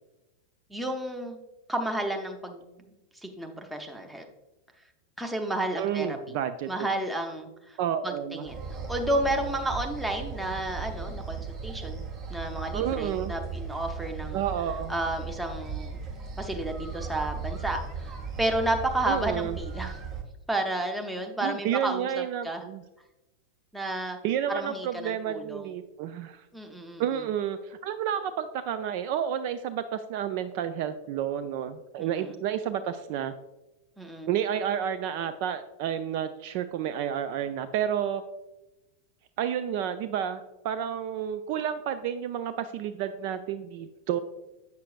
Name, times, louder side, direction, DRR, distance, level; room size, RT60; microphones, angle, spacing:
voice 1, 0.7-1.4 1.7-2.7 3.2-4.3 5.2-6.4 6.7-7.8 8.0-8.6 8.9-14.4 14.9-16.0 16.4-19.9 20.5-22.6 23.7-24.2 24.5-25.7 26.5-27.0 32.0-32.4 34.0-34.3, right 1 dB, 5° right, 3 dB, 0.8 m, -31 dB
voice 2, 5.8-6.9 7.8-8.5 12.7-13.3 14.3-14.9 19.0-19.6 21.4-22.8 24.2-26.4 27.0-33.3 34.3-38.2 39.4-44.2, right 9 dB, 45° right, 10 dB, 0.3 m, -30 dB
sound 1, 8.5-20.2, right 5 dB, 30° right, 1.0 m, -37 dB
8.0 x 6.6 x 2.4 m, 0.99 s
figure-of-eight pair, 90°, 0 cm